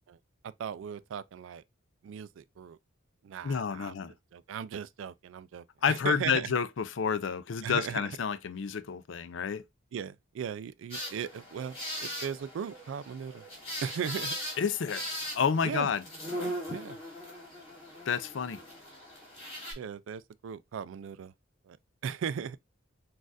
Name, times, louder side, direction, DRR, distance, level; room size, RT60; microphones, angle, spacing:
voice 1, 0.4-1.6 2.0-2.8 3.2-4.0 4.3-6.5 7.6-8.0 9.9-13.4 13.8-14.3 15.6-15.9 16.7-17.0 19.8-21.3 21.6-21.8 22.0-22.6, right 7 dB, 75° right, 0.3 m, -37 dB
voice 2, 3.4-4.1 5.8-9.6 14.6-15.0 15.3-16.0 18.1-18.6, left 6 dB, 70° left, 0.4 m, -29 dB
sound 1, 10.9-19.7, equal, 30° left, 2.5 m, -40 dB
6.2 x 2.4 x 2.5 m
head